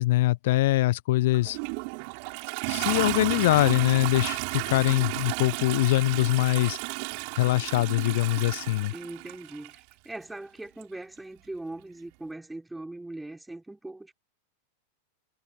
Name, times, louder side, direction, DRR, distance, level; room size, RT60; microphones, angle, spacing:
voice 1, 0.0-1.6 2.7-6.8 7.4-8.9, left 17 dB, 55° left, 0.9 m, -23 dB
Toilet flush, 1.3-9.8 10.8-10.9, right 40 dB or more, 45° right, 5.6 m, -33 dB
voice 2, 8.9-14.1, right 2 dB, 5° right, 5.4 m, -40 dB
figure-of-eight pair, 90°, 0 cm